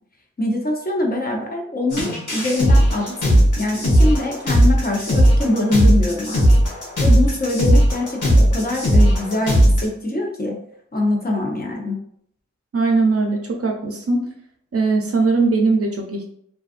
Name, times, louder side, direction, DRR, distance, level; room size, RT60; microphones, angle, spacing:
voice 1, 0.4-6.4 7.0-10.6 10.9-12.0, left 2 dB, 30° left, -1 dB, 0.7 m, -23 dB
sound 1, 1.9-9.8, equal, 80° left, 1.0 m, -16 dB
voice 2, 12.7-14.3 14.7-16.3, right 3 dB, 50° right, 2 dB, 0.5 m, -20 dB
2.6 x 2.3 x 2.4 m, 0.68 s
cardioid pair, 50°, 31 cm